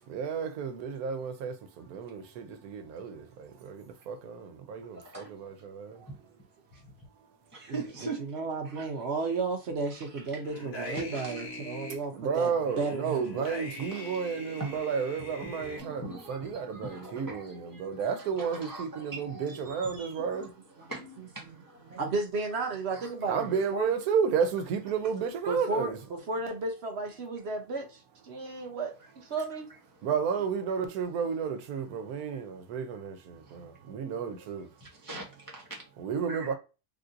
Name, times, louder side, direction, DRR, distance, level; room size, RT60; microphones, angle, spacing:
voice 1, 0.1-6.0 12.1-20.5 23.3-26.0 30.0-34.7 36.0-36.5, right 6 dB, 80° right, 1.1 m, -32 dB
voice 2, 7.5-8.2 8.6-8.9 9.9-10.4 10.9-11.5 13.9-14.2 14.5-14.8 15.4-20.5 20.9-21.4 21.9-22.0 22.5-23.6 34.8-35.2 35.5-35.8 36.3-36.5, right 2 dB, 25° left, 0.5 m, -42 dB
voice 3, 8.2-13.5 17.0-17.1 20.8-20.9 21.4-21.6 21.9-23.9 25.5-29.7 30.1-30.2, right 3 dB, 60° right, 0.7 m, -34 dB
sound 1, 10.4-12.0 12.6-15.8, left 1 dB, 80° left, 1.7 m, -42 dB
3.5 x 2.5 x 2.5 m
omnidirectional pair, 1.6 m